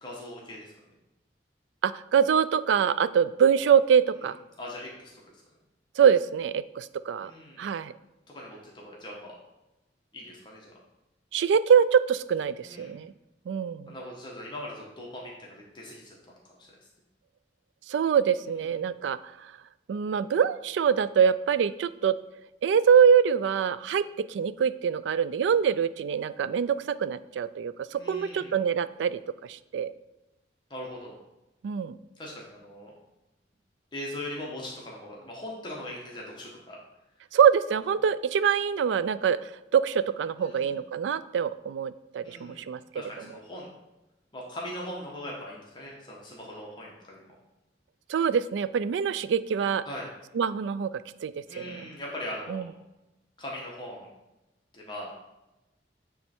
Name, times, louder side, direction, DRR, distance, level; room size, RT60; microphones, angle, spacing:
voice 1, 0.0-0.7 4.6-5.4 7.2-7.6 8.3-9.3 10.1-10.7 12.6-12.9 13.9-16.2 18.4-18.5 27.9-28.5 30.7-31.1 32.2-32.9 33.9-36.8 40.4-40.8 42.2-42.6 42.9-43.7 44.3-47.3 49.9-50.1 51.5-52.6 53.4-54.1 54.7-55.1, left 1 dB, 25° left, -3 dB, 1.3 m, -40 dB
voice 2, 1.8-4.4 6.0-7.3 7.6-7.9 11.3-13.1 13.5-13.9 17.9-19.5 19.9-22.2 22.6-29.9 31.6-32.0 37.3-43.0 48.1-49.8 50.3-51.9 52.5-52.6, right 7 dB, 80° right, 16 dB, 0.3 m, -24 dB
8.9 x 3.2 x 4.5 m, 0.98 s
head